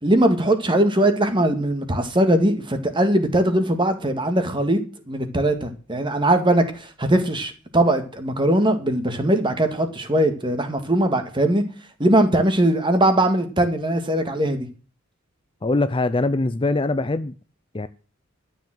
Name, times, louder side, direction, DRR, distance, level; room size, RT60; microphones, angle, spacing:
voice 1, 0.0-4.8 5.1-11.6 12.0-14.7, right 1 dB, 20° right, 1.9 m, -20 dB
voice 2, 15.6-17.3 17.7-17.9, left 2 dB, 25° left, 0.5 m, -22 dB
12.5 x 7.2 x 7.7 m
head